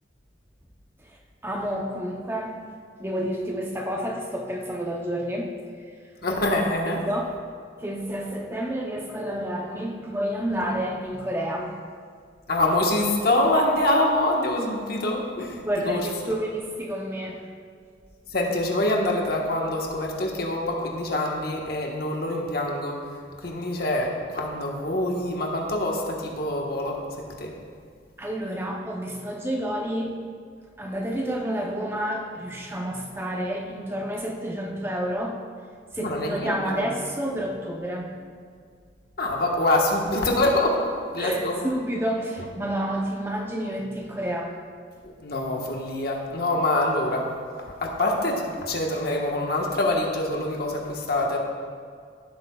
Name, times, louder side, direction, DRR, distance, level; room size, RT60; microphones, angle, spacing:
voice 1, 1.4-2.6 3.0-5.6 6.9-7.3 7.8-11.8 15.6-17.5 28.2-30.2 30.8-35.4 35.9-38.1 41.2-44.5, equal, 10° right, 0 dB, 0.7 m, -29 dB
voice 2, 6.2-7.0 12.5-16.1 18.3-23.0 23.4-27.6 35.9-36.9 39.2-41.6 45.2-47.3 47.8-51.4, left 1 dB, 55° left, 0 dB, 1.3 m, -25 dB
15.0 x 8.0 x 2.3 m, 2.1 s
head